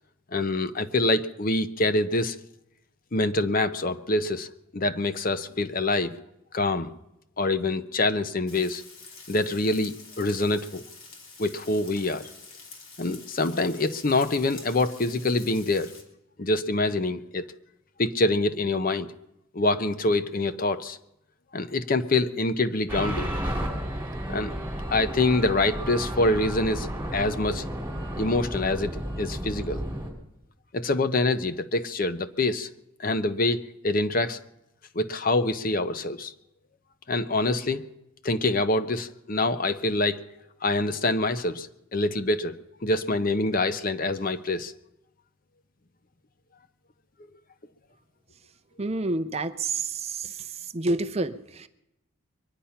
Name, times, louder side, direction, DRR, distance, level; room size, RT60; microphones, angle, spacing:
voice 1, 0.3-2.4 3.1-4.5 4.7-6.2 6.5-6.9 7.4-8.8 9.3-10.8 11.4-12.3 13.0-15.9 16.4-17.4 18.0-19.1 19.5-21.0 21.5-23.3 24.3-24.5 24.9-27.6 28.2-29.8 30.7-32.7 33.0-34.4 34.9-36.3 37.1-37.9 38.2-40.2 40.6-44.7, left 2 dB, 40° left, 11 dB, 0.6 m, -25 dB
Frying (food), 8.5-16.0, left 4 dB, 70° left, 3.0 m, -47 dB
sound 1, 22.9-30.1, equal, 10° right, 3.0 m, -32 dB
voice 2, 48.8-50.3 50.7-51.7, right 2 dB, 30° right, 11 dB, 0.6 m, -28 dB
23.0 x 9.9 x 5.7 m, 0.86 s
head